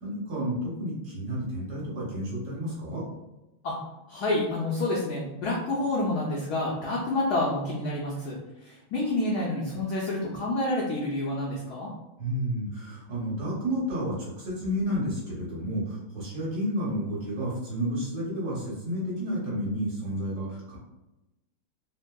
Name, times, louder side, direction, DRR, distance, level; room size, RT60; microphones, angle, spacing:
voice 1, 0.0-3.0 12.2-20.8, equal, 60° right, -6 dB, 1.3 m, -31 dB
voice 2, 4.1-11.9, left 2 dB, 85° left, -4 dB, 0.8 m, -28 dB
3.4 x 2.6 x 2.2 m, 0.98 s
omnidirectional pair, 2.4 m